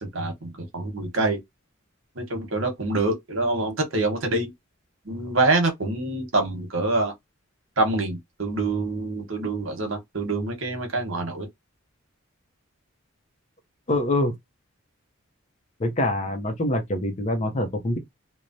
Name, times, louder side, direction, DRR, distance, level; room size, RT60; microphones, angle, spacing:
voice 1, 0.0-1.4 2.2-4.5 5.0-7.1 7.8-11.5, right 2 dB, 70° right, 1.0 m, -26 dB
voice 2, 13.9-14.3 15.8-18.0, left 1 dB, 35° left, 0.5 m, -25 dB
3.1 x 2.1 x 2.6 m
head